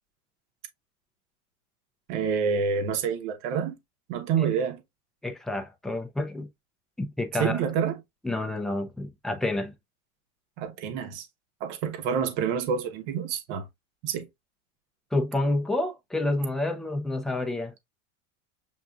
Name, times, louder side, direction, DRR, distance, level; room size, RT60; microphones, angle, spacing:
voice 1, 2.1-3.7 4.1-4.8 7.4-8.0 10.6-11.3 11.6-13.7 14.0-14.3, right 7 dB, 60° right, 1.0 m, -27 dB
voice 2, 5.2-6.5 7.0-7.6 8.2-9.7 15.1-17.7, left 2 dB, ahead, 0.3 m, -29 dB
7.3 x 2.5 x 2.3 m
supercardioid pair, 125°, 40 cm